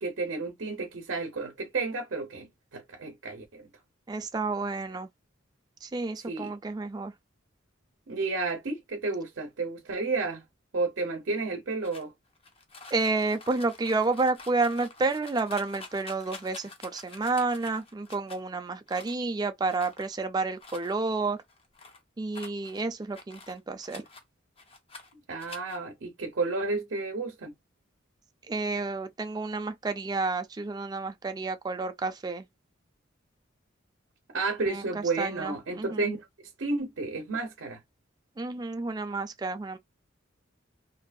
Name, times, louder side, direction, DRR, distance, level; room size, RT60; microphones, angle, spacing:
voice 1, 0.0-2.5 2.7-3.7 6.3-6.5 8.1-10.4 10.7-12.1 25.3-27.5 34.3-36.3 36.6-37.8, right 3 dB, 70° right, 0.6 m, -31 dB
voice 2, 4.1-5.1 5.8-7.1 12.9-21.4 22.2-24.0 28.5-32.5 34.7-36.0 38.4-39.8, right 3 dB, 20° right, 0.3 m, -30 dB
sound 1, 11.8-18.4 18.9-19.3 19.7-20.2 20.6-20.9 21.4-22.0 22.3-24.2 24.6-25.1 25.4-25.8, left 3 dB, 30° left, 0.6 m, -48 dB
2.6 x 2.4 x 2.2 m
head